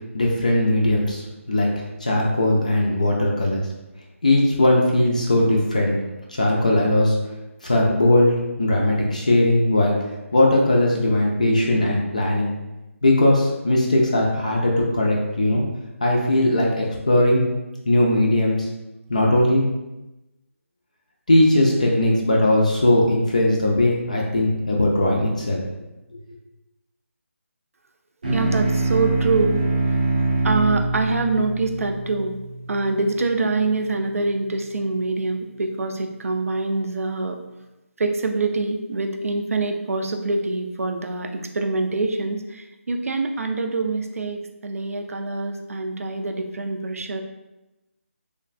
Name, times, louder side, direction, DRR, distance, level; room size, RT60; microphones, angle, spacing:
voice 1, 0.1-3.6 4.2-6.0 6.3-7.2 7.6-10.0 10.3-12.5 13.0-15.6 16.0-17.4 17.8-18.7 19.1-19.6 21.3-25.6, left 1 dB, 30° left, -2 dB, 0.4 m, -19 dB
sound 1, 28.2-33.1, right 2 dB, 35° right, 0.5 m, -24 dB
voice 2, 28.3-29.7 30.4-32.4 32.7-37.4 38.0-47.2, right 3 dB, 80° right, 5 dB, 0.4 m, -25 dB
3.1 x 2.4 x 2.5 m, 0.99 s
hypercardioid pair, 180°, 8 cm